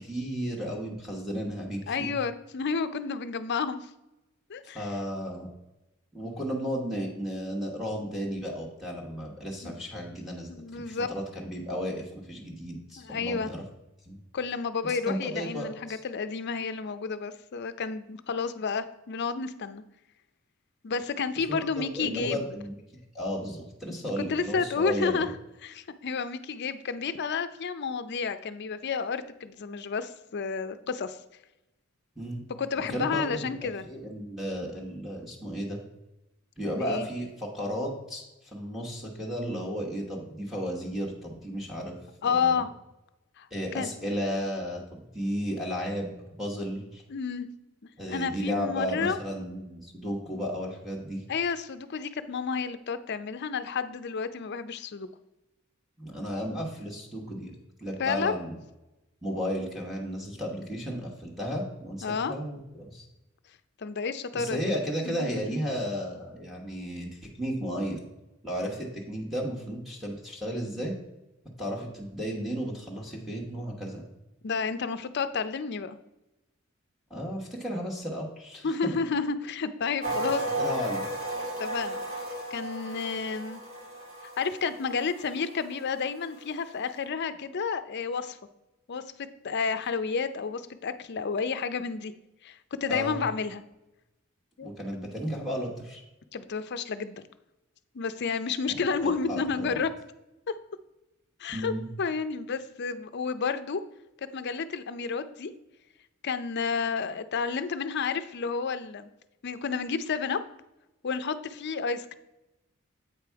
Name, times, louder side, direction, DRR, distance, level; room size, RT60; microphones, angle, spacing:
voice 1, 0.0-2.1 4.7-5.5 6.1-13.6 14.1-14.2 14.8-16.0 21.5-25.3 32.2-32.4 32.9-35.8 36.6-38.2 38.5-42.0 42.2-42.6 43.5-47.0 48.0-51.2 56.0-57.5 57.8-58.6 59.2-63.0 64.3-68.0 68.4-70.9 71.6-74.0 77.1-78.8 80.0-80.1 80.6-81.1 92.9-93.2 94.6-96.0 99.0-99.8 101.5-101.9, equal, ahead, -2 dB, 1.2 m, -34 dB
voice 2, 1.9-3.9 4.5-4.9 9.6-9.9 10.5-11.1 13.0-13.5 14.3-19.8 20.8-22.4 24.2-25.3 25.6-31.2 32.6-33.8 36.7-37.1 42.2-42.7 43.4-43.5 43.7-43.9 47.1-47.5 48.1-49.2 51.3-55.1 58.0-58.4 62.0-62.3 63.8-64.7 65.1-65.3 74.4-76.0 78.6-80.4 81.6-82.0 82.5-83.6 84.4-88.4 88.9-92.1 92.4-93.6 94.6-94.7 96.3-97.1 97.9-99.9 101.4-101.7 102.0-103.8 104.2-105.5 106.2-109.1 109.4-110.4 111.0-112.1, left 5 dB, 55° left, 12 dB, 0.5 m, -31 dB
sound 1, 80.0-86.0 86.3-86.5, right 1 dB, 65° right, 2.7 m, -34 dB
8.2 x 5.1 x 4.6 m, 0.95 s
head